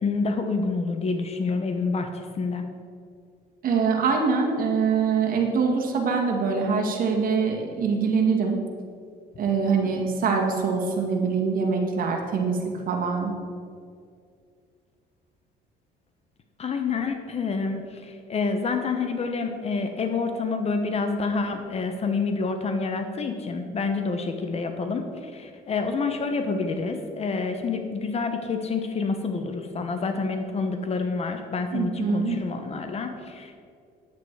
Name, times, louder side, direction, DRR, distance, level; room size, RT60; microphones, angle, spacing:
voice 1, 0.0-2.6 16.6-33.5, left 4 dB, 40° left, 6 dB, 0.9 m, -28 dB
voice 2, 3.6-8.6 9.4-13.3 31.7-32.3, right 5 dB, 55° right, 1 dB, 1.9 m, -24 dB
9.6 x 8.3 x 4.7 m, 2.3 s
cardioid pair, 110°, 17 cm